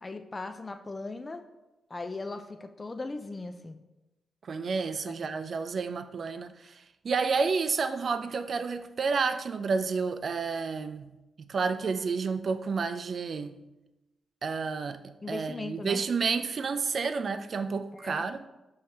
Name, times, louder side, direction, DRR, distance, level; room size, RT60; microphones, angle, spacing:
voice 1, 0.0-1.4 1.9-3.8 5.1-5.2 15.2-16.0 17.9-18.2, left 3 dB, 35° left, 0.4 m, -38 dB
voice 2, 4.4-11.1 11.4-13.6 14.4-18.4, right 5 dB, 60° right, 0.3 m, -30 dB
5.5 x 3.2 x 2.8 m
supercardioid pair, 45°, 0 cm